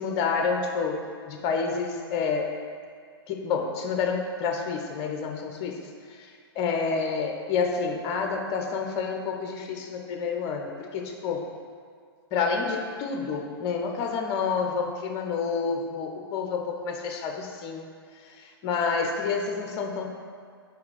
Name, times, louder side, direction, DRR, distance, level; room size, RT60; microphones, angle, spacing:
voice 1, 0.0-2.6 3.3-11.5 12.3-17.9 18.1-20.1, left 5 dB, 35° left, 3 dB, 0.7 m, -29 dB
4.8 x 4.2 x 4.8 m, 2.1 s
figure-of-eight pair, 110°, 14 cm